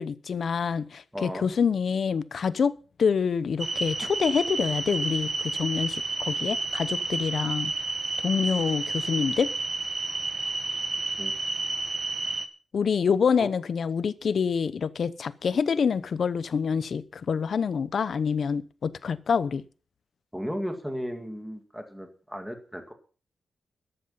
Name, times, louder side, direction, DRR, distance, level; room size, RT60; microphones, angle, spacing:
voice 1, 0.0-2.7 3.0-7.7 8.2-9.5 12.7-19.6, left 6 dB, 50° left, 0.8 m, -26 dB
voice 2, 1.1-1.5 11.2-11.3 20.3-22.9, equal, ahead, 2.0 m, -35 dB
sound 1, 3.6-12.5, right 3 dB, 25° right, 1.3 m, -30 dB
14.0 x 11.0 x 5.6 m
wide cardioid pair, 170°, 0 cm